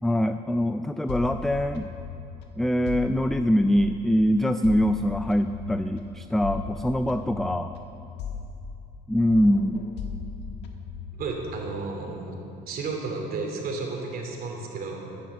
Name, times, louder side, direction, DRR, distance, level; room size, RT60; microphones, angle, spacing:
voice 1, 0.0-1.9 2.6-7.7 9.1-9.8, equal, ahead, 9 dB, 0.4 m, -23 dB
sound 1, 1.1-4.2 4.6-9.0 9.3-11.7, left 6 dB, 85° left, 1.5 m, -38 dB
voice 2, 11.2-12.4 12.7-15.0, right 3 dB, 60° right, 1 dB, 3.0 m, -32 dB
13.5 x 10.5 x 7.5 m, 2.8 s
cardioid pair, 110°, 17 cm